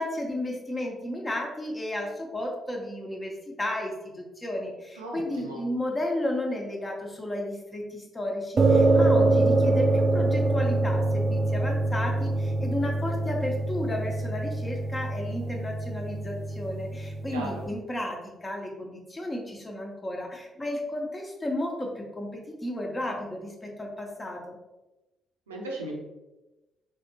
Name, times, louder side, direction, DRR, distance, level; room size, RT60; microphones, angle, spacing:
voice 1, 0.0-24.6, left 1 dB, 20° left, 0 dB, 1.0 m, -33 dB
voice 2, 5.0-5.6 17.3-17.6 25.5-26.0, right 2 dB, 80° right, -1 dB, 0.6 m, -36 dB
sound 1, 8.6-17.7, right 2 dB, 40° right, 0.4 m, -25 dB
4.4 x 3.3 x 2.8 m, 1.0 s
figure-of-eight pair, 40°, 0 cm